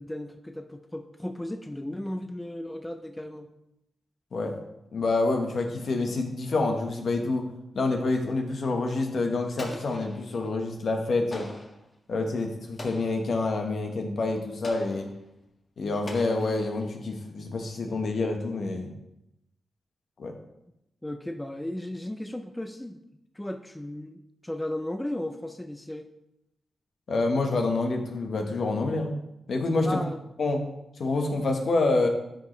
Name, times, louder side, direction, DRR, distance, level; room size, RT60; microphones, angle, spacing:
voice 1, 0.0-3.5 21.0-23.0 23.3-26.1 29.8-30.2, left 1 dB, 10° left, 6 dB, 0.5 m, -35 dB
voice 2, 4.9-7.5 7.7-11.5 12.1-15.1 15.8-18.9 20.2-20.3 27.1-29.2 29.5-30.0 30.4-30.6 31.0-32.1, left 3 dB, 65° left, 3 dB, 1.4 m, -27 dB
Explosion, 9.6-10.5 11.3-11.9 12.8-13.3 14.6-15.2 16.1-16.9, left 1 dB, 40° left, 1.6 m, -42 dB
12.5 x 5.3 x 3.3 m, 0.86 s
cardioid pair, 95°, 0 cm